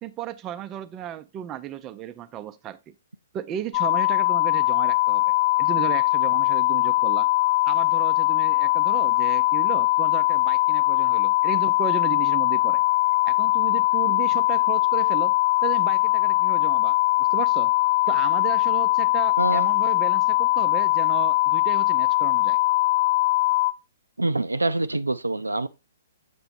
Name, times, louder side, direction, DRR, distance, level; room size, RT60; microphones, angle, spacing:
voice 1, 0.0-2.9 3.3-5.2 5.6-7.3 7.6-12.8 13.3-17.7 18.1-22.6, right 11 dB, 25° right, 0.5 m, -34 dB
sound 1, 3.7-23.7, left 18 dB, 35° left, 0.5 m, -21 dB
voice 2, 19.4-19.7 24.2-25.7, right 2 dB, 90° right, 0.4 m, -25 dB
6.8 x 6.8 x 2.5 m
figure-of-eight pair, 125°, 0 cm